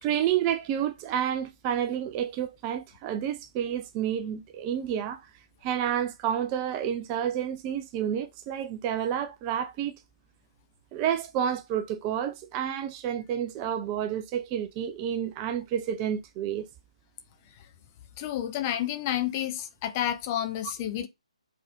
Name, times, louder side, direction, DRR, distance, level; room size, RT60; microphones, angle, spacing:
voice 1, 0.0-5.2 5.6-10.0 10.9-16.7, right 9 dB, 20° right, 0.4 m, -30 dB
voice 2, 18.2-21.1, left 11 dB, 20° left, 0.7 m, -30 dB
5.3 x 4.0 x 5.2 m
figure-of-eight pair, 140°, 4 cm